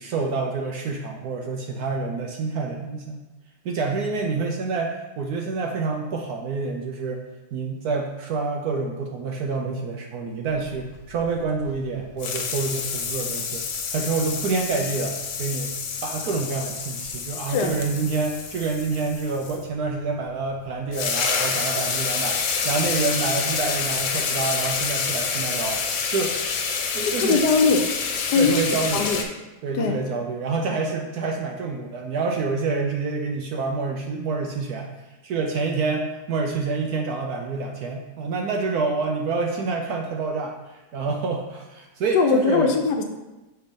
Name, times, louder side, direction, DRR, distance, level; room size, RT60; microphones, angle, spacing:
voice 1, 0.0-3.2 3.6-7.2 7.5-13.6 13.9-15.7 16.0-26.4 26.9-27.4 28.3-29.1 29.6-34.9 35.2-42.7, right 4 dB, 70° right, 2 dB, 1.0 m, -27 dB
sound 1, 10.7-11.9 12.2-19.6 20.6-20.7 20.9-29.2, left 5 dB, 85° left, 1.5 m, -28 dB
voice 2, 27.0-27.8 28.1-28.6 28.9-29.2 29.7-30.0 42.1-43.0, left 4 dB, 70° left, 4 dB, 1.1 m, -21 dB
6.8 x 3.4 x 5.1 m, 1.1 s
omnidirectional pair, 2.0 m